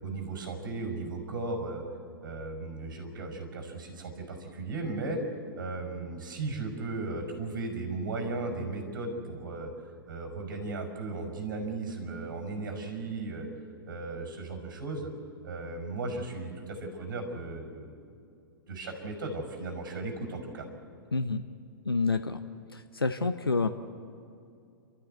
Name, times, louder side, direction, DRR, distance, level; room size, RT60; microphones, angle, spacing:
voice 1, 0.0-1.8 2.2-5.2 5.6-9.7 10.1-13.5 13.9-15.1 15.4-17.9 18.7-20.7, right 3 dB, 60° right, 3 dB, 5.6 m, -36 dB
voice 2, 21.1-21.4 21.8-22.4 22.7-23.7, left 3 dB, 85° left, 10 dB, 0.9 m, -28 dB
29.5 x 13.5 x 8.2 m, 2.5 s
figure-of-eight pair, 110°, 12 cm